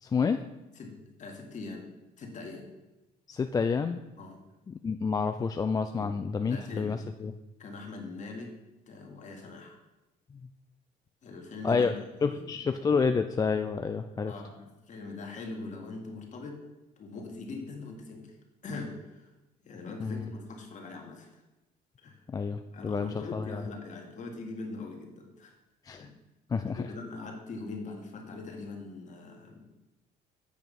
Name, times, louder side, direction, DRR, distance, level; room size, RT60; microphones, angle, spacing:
voice 1, 0.0-0.4 3.3-4.0 4.7-7.3 10.3-10.4 11.6-11.9 12.2-14.3 20.0-20.3 22.3-23.6 25.9-26.1 26.5-26.9, left 5 dB, 20° left, 7 dB, 0.3 m, -29 dB
voice 2, 0.7-2.7 4.2-4.4 5.9-6.1 6.4-7.0 7.6-8.5 8.9-9.8 11.2-11.9 12.2-12.7 14.3-16.6 17.0-18.4 18.6-19.3 19.6-21.4 22.0-22.2 22.7-25.6 26.0-26.1 26.7-29.8, left 3 dB, 45° left, 2 dB, 1.8 m, -42 dB
8.3 x 5.1 x 5.3 m, 1.0 s
cardioid pair, 110°, 17 cm